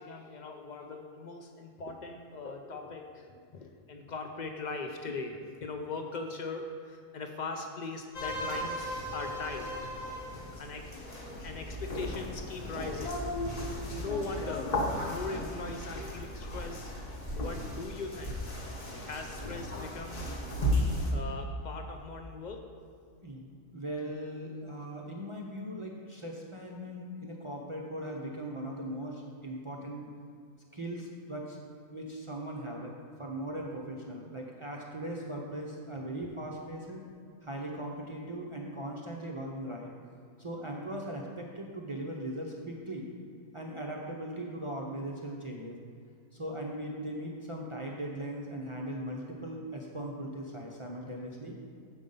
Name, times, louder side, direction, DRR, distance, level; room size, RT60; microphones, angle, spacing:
voice 1, 0.0-9.9 10.4-10.9 11.4-13.3 13.9-16.9 17.4-18.4 19.0-20.4 21.1-22.6, left 3 dB, 80° left, 4 dB, 0.4 m, -40 dB
sound 1, 8.1-21.1, left 1 dB, 35° left, 0.9 m, -35 dB
voice 2, 23.2-30.1 30.7-31.6 31.9-32.9 33.2-37.0 37.4-39.9 40.4-43.1 43.5-45.8 46.3-51.6, right 1 dB, 45° right, -2 dB, 0.4 m, -39 dB
7.1 x 5.1 x 5.3 m, 2.3 s
omnidirectional pair, 1.4 m